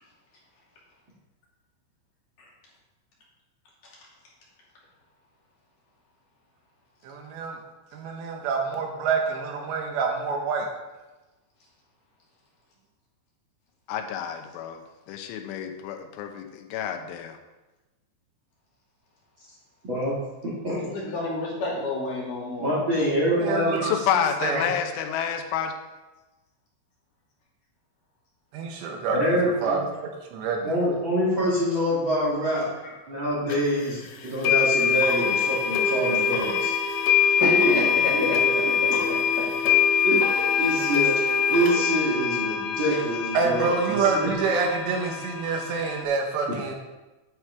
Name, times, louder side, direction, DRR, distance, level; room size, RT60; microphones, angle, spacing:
voice 1, 7.0-7.6 7.9-10.7 23.4-24.7 28.5-30.8 43.3-46.8, right 4 dB, 75° right, 2 dB, 3.1 m, -27 dB
voice 2, 13.9-17.4 23.8-25.7, left 8 dB, 85° left, 5 dB, 3.3 m, -29 dB
voice 3, 19.8-20.1 20.6-20.8 22.6-23.8 29.1-29.8 30.6-32.6 33.1-36.8 37.4-38.2 38.9-39.0 40.0-41.1 41.5-44.3, equal, 35° right, -6 dB, 2.1 m, -26 dB
voice 4, 20.8-22.7 32.8-32.9 33.5-33.6 37.4-39.8 42.7-43.0, left 2 dB, 50° left, -5 dB, 3.7 m, -31 dB
sound 1, 33.5-33.6 34.4-46.0, left 7 dB, 70° left, 2.7 m, -24 dB
10.5 x 8.2 x 4.7 m, 1.1 s
omnidirectional pair, 5.4 m